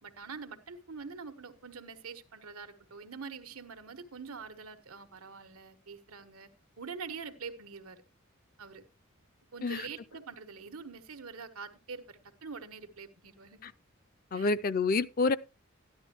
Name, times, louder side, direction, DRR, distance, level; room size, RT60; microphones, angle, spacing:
voice 1, 0.0-6.5 6.8-8.0 8.6-8.8 9.5-13.6 14.3-14.5, right 5 dB, 90° right, 1.3 m, -45 dB
voice 2, 14.3-15.4, left 3 dB, 40° left, 0.5 m, -28 dB
13.5 x 11.0 x 3.0 m
head